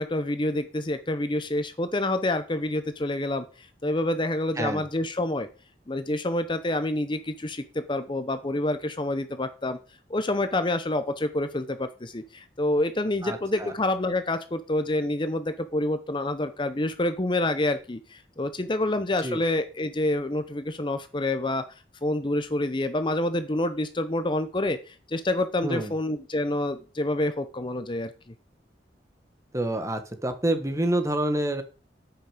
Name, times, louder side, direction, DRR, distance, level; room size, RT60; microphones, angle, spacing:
voice 1, 0.0-5.5 5.9-9.8 10.1-28.1, left 1 dB, 25° left, 10 dB, 0.8 m, -27 dB
voice 2, 13.2-13.7 19.2-19.4 25.6-25.9 29.5-31.6, right 1 dB, 15° right, 8 dB, 1.4 m, -27 dB
9.9 x 8.2 x 5.0 m, 0.35 s
head